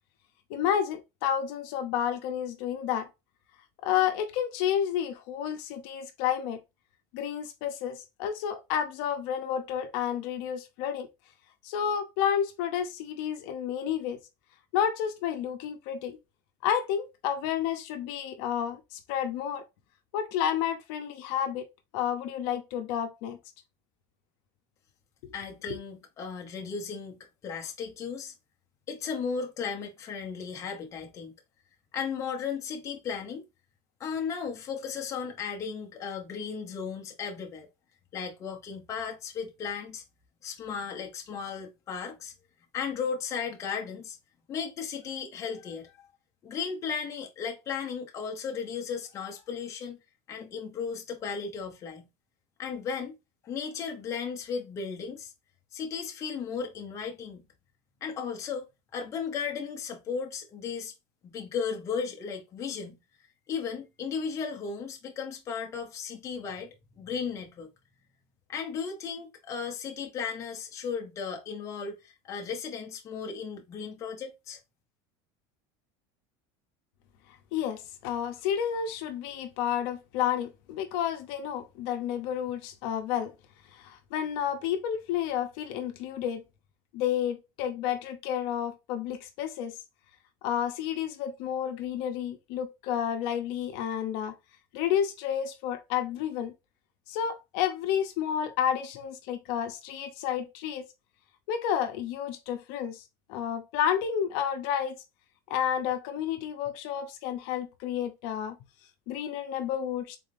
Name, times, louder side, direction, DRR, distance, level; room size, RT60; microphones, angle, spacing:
voice 1, 0.5-3.1 3.8-6.6 7.1-11.1 11.6-14.2 14.7-16.2 16.6-19.6 20.1-21.7 21.9-23.4 77.5-83.3 83.7-86.4 86.9-89.8 90.4-94.3 94.7-96.5 97.1-100.8 101.5-103.0 103.3-105.0 105.5-108.5 109.1-110.2, left 9 dB, 60° left, 0.7 m, -30 dB
voice 2, 25.3-28.3 28.9-31.3 31.9-33.4 34.0-37.7 38.1-40.0 40.4-42.3 42.7-44.2 44.5-46.1 46.4-50.0 50.3-52.1 52.6-53.1 53.4-55.3 55.7-57.4 58.0-58.7 58.9-60.9 61.2-63.0 63.5-67.7 68.5-74.6, left 6 dB, 25° left, 0.7 m, -35 dB
3.7 x 3.4 x 2.6 m
cardioid pair, 170°, 13 cm